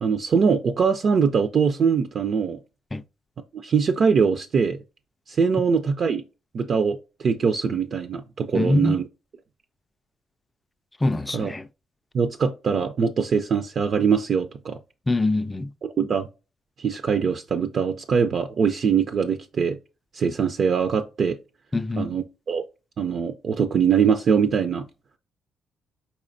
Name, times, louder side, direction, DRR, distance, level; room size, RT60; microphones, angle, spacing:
voice 1, 0.0-2.6 3.6-4.8 5.3-6.2 6.5-9.0 11.3-11.5 12.1-14.8 15.8-16.3 16.8-19.8 20.1-21.4 22.0-22.6 23.0-24.8, right 6 dB, 55° right, 0.4 m, -22 dB
voice 2, 8.5-9.0 11.0-11.7 15.1-15.7 21.7-22.1, left 2 dB, 15° left, 0.4 m, -23 dB
4.9 x 4.2 x 2.5 m
cardioid pair, 90°, 0 cm